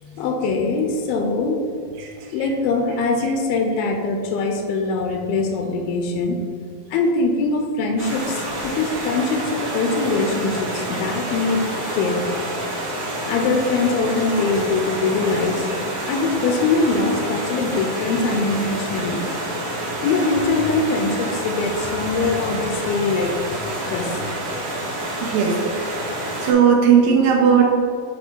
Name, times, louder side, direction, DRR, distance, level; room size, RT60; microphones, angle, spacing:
voice 1, 0.0-1.7 2.3-6.4 6.9-11.7 11.9-12.3 13.3-15.7 16.1-19.3 20.0-23.5 23.9-24.2, left 3 dB, 85° left, 3 dB, 2.4 m, -22 dB
Stream, 8.0-26.5, right 1 dB, 60° right, 2.1 m, -28 dB
voice 2, 25.2-26.0 26.4-27.6, right 7 dB, 80° right, 0 dB, 2.6 m, -16 dB
7.8 x 3.2 x 4.4 m, 2.4 s
omnidirectional pair, 4.2 m